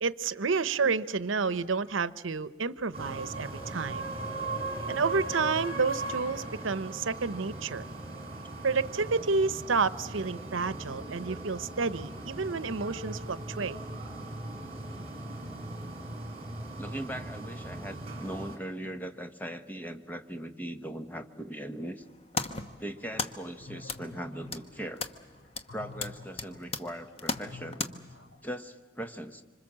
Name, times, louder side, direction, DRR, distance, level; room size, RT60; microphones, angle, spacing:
voice 1, 0.0-4.1 4.9-7.8 8.6-13.8, right 4 dB, 90° right, 16 dB, 0.8 m, -30 dB
sound 1, 2.9-18.6, right 2 dB, 30° right, 4.3 m, -39 dB
voice 2, 16.8-22.0 22.8-25.0 25.7-28.0 28.4-29.4, right 1 dB, 10° left, 7 dB, 1.1 m, -39 dB
sound 2, 22.0-27.9, left 3 dB, 30° left, 1.0 m, -38 dB
sound 3, 22.4-28.5, left 3 dB, 75° left, 3.4 m, -50 dB
26.0 x 26.0 x 7.4 m, 1.4 s
head